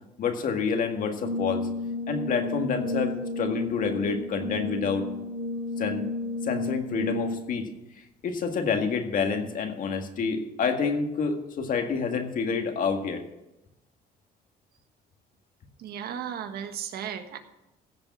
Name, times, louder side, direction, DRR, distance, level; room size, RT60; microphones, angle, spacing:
voice 1, 0.2-1.7 2.1-5.1 5.8-6.1 6.4-7.7 8.0-13.2, left 5 dB, 55° left, 5 dB, 1.8 m, -28 dB
Brass instrument, 1.2-7.6, left 2 dB, 45° right, 3.5 m, -32 dB
voice 2, 15.8-17.4, right 8 dB, 65° right, 7 dB, 1.4 m, -35 dB
15.5 x 6.8 x 6.1 m, 0.94 s
cardioid pair, 110°, 17 cm